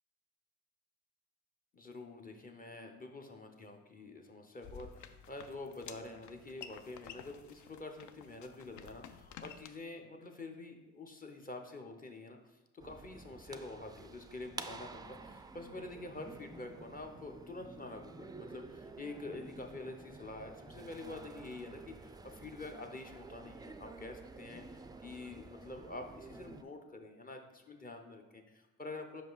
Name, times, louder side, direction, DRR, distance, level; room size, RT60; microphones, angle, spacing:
voice 1, 1.7-12.4 12.7-29.2, left 2 dB, 30° left, 3 dB, 0.8 m, -47 dB
sound 1, 4.6-9.7, left 8 dB, 75° left, 0.5 m, -52 dB
sound 2, 12.8-26.6, right 3 dB, 15° right, 0.3 m, -51 dB
5.3 x 5.1 x 4.0 m, 1.1 s
cardioid pair, 90°, 30 cm